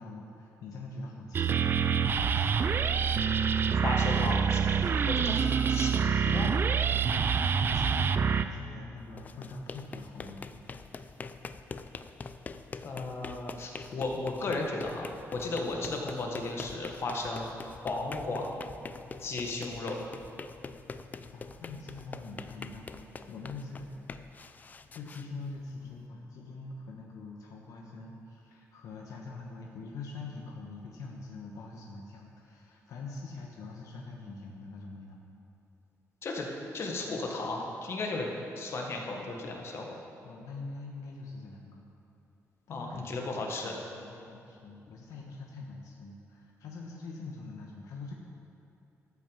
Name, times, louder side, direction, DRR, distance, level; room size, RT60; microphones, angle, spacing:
voice 1, 0.0-2.7 5.8-10.9 21.3-24.4 24.9-35.2 39.1-39.4 40.2-41.8 42.7-48.1, left 3 dB, 70° left, -1 dB, 1.2 m, -44 dB
sound 1, 1.3-8.4, right 6 dB, 40° right, 0.4 m, -26 dB
voice 2, 3.8-4.6 5.0-5.9 6.3-6.5 12.8-17.5 17.8-18.5 19.2-20.0 36.2-36.5 36.7-38.3 38.5-40.0 42.7-43.7, left 2 dB, 50° left, 0 dB, 1.6 m, -34 dB
sound 2, 9.0-26.0, left 4 dB, 30° left, 0.4 m, -44 dB
13.0 x 6.1 x 7.2 m, 2.6 s
cardioid pair, 135°, 6 cm